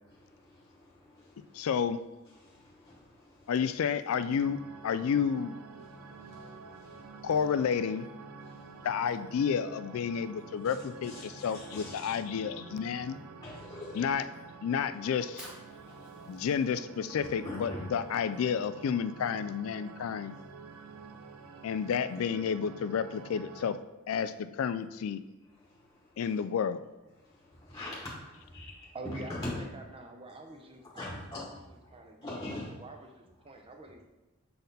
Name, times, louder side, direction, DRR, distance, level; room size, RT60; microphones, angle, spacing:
voice 1, 0.0-1.7 2.3-3.6 5.8-7.4 8.4-8.9 10.6-10.8 11.0-12.2 12.9-13.0 13.4-14.2 14.7-14.9 15.6-16.6 17.1-17.9 20.6-21.8 25.5-26.4 27.1-29.6 30.8-32.8, left 1 dB, 15° left, -4 dB, 1.1 m, -45 dB
voice 2, 1.5-2.0 3.5-4.6 4.8-5.5 7.2-8.1 8.8-13.2 14.0-14.2 14.6-15.5 16.3-20.4 21.6-23.8 24.1-25.2 26.2-26.8, left 7 dB, 65° left, 12 dB, 0.3 m, -30 dB
sound 1, 4.2-23.8, right 4 dB, 75° right, 0.5 m, -49 dB
Fire, 15.3-21.3, equal, 5° right, 1.4 m, -56 dB
voice 3, 28.9-31.6 31.9-32.3 32.6-34.0, right 2 dB, 25° right, 3 dB, 0.7 m, -47 dB
6.7 x 4.1 x 4.0 m, 1.1 s
head